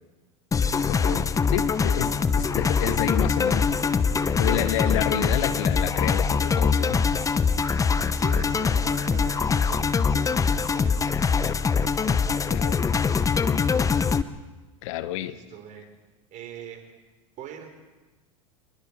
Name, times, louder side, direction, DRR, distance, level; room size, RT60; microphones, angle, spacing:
sound 1, 0.5-14.2, left 5 dB, 20° left, 0.9 m, -23 dB
voice 1, 0.9-3.7 4.4-7.1 12.5-12.8 14.8-15.3, left 12 dB, 65° left, 14 dB, 1.1 m, -29 dB
voice 2, 8.1-11.8 15.1-15.9 16.3-16.8 17.4-17.7, right 9 dB, 45° right, 5 dB, 4.5 m, -43 dB
26.5 x 21.0 x 4.8 m, 1.2 s
hypercardioid pair, 85°, 18 cm